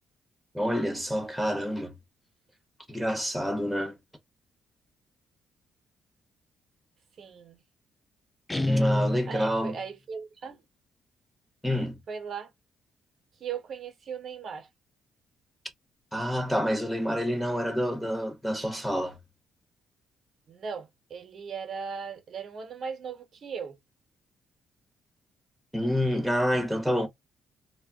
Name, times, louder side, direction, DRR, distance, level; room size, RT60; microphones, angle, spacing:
voice 1, 0.5-1.9 2.9-4.0 8.7-9.7 11.6-12.0 16.1-19.2 25.7-27.1, equal, ahead, 0.8 m, -28 dB
voice 2, 7.2-7.6 9.3-10.6 12.1-12.5 13.4-14.7 20.5-23.8, right 6 dB, 60° right, 0.8 m, -38 dB
Guitar, 8.5-9.8, left 1 dB, 15° left, 0.4 m, -27 dB
2.2 x 2.0 x 3.4 m
cardioid pair, 90°, 0 cm